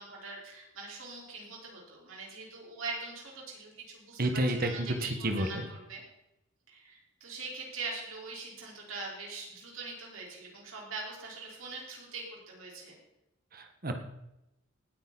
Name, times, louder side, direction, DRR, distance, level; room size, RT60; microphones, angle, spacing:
voice 1, 0.0-6.0 6.7-13.0, right 3 dB, 85° right, -2 dB, 4.8 m, -42 dB
voice 2, 4.2-5.5 13.5-13.9, right 1 dB, 50° right, 5 dB, 1.7 m, -30 dB
18.5 x 9.4 x 4.2 m, 0.89 s
head